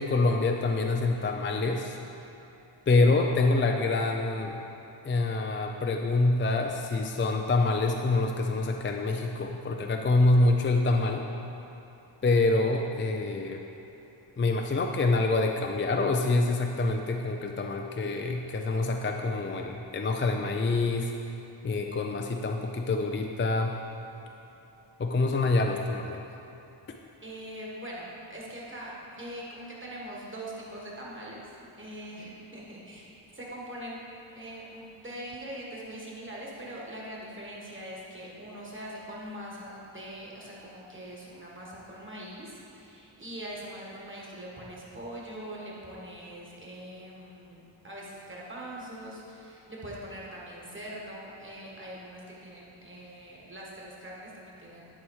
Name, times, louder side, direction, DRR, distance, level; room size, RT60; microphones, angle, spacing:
voice 1, 0.0-2.0 2.9-4.6 5.0-11.3 12.2-13.6 14.4-21.1 21.6-23.8 25.0-26.2, left 3 dB, 30° left, 3 dB, 0.3 m, -26 dB
voice 2, 27.2-31.4 31.7-34.0 34.3-54.8, right 1 dB, 25° right, -5 dB, 1.5 m, -42 dB
10.5 x 4.2 x 4.7 m, 2.9 s
wide cardioid pair, 115°, 47 cm